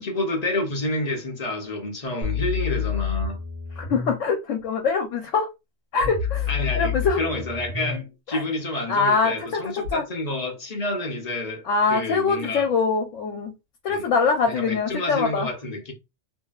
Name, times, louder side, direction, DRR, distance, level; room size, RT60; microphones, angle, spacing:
voice 1, 0.0-3.4 6.5-12.7 13.9-14.1 14.5-15.9, left 1 dB, 45° left, 0.6 m, -29 dB
sound 1, 2.2-4.2 6.0-8.0 9.9-10.0, left 7 dB, 65° right, 1.1 m, -28 dB
voice 2, 3.8-5.5 5.9-7.2 8.3-8.4 8.9-9.6 9.9-10.1 11.6-13.5 13.8-15.5, left 5 dB, 90° left, 1.0 m, -23 dB
2.6 x 2.6 x 2.3 m
omnidirectional pair, 1.3 m